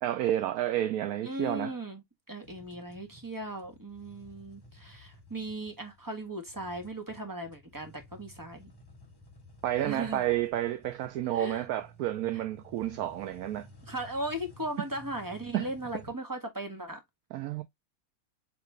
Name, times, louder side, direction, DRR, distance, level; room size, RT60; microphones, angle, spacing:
voice 1, 0.0-1.7 9.6-13.7 15.5-15.7 17.3-17.6, right 12 dB, 80° right, 1.1 m, -30 dB
voice 2, 1.2-2.0 2.3-8.7 9.8-10.2 11.3-11.6 13.9-17.0, right 1 dB, 15° right, 1.2 m, -37 dB
sound 1, 2.4-16.1, left 1 dB, 20° left, 0.7 m, -55 dB
4.8 x 3.1 x 3.4 m
omnidirectional pair, 1.6 m